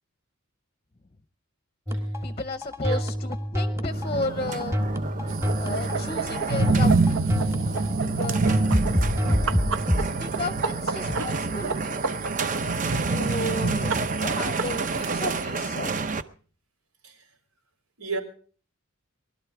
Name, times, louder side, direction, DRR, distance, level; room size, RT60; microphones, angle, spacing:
sound 1, 1.9-10.1, equal, 10° right, 1.7 m, -27 dB
voice 1, 2.2-4.8 5.6-7.4 8.0-8.6 9.4-9.6 10.0-12.0 13.0-13.9 14.2-15.9, left 2 dB, 25° left, 12 dB, 0.7 m, -33 dB
sound 2, 3.9-16.2, right 3 dB, 35° right, 0.7 m, -27 dB
sound 3, 5.3-15.4, right 4 dB, 65° right, 0.8 m, -33 dB
voice 2, 13.3-13.6 17.0-17.3 18.0-18.2, right 4 dB, 80° right, 2 dB, 4.5 m, -34 dB
20.5 x 12.5 x 4.8 m, 0.43 s
head